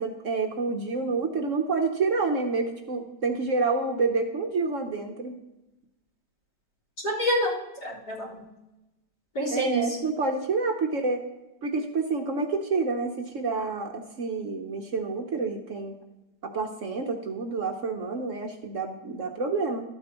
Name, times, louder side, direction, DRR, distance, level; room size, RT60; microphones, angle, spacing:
voice 1, 0.0-5.3 9.5-11.2 11.6-15.9 16.4-19.8, right 4 dB, 55° right, 4 dB, 1.1 m, -28 dB
voice 2, 7.0-8.5 9.3-10.0, equal, 70° left, -4 dB, 4.1 m, -28 dB
13.0 x 8.5 x 3.0 m, 0.98 s
omnidirectional pair, 1.8 m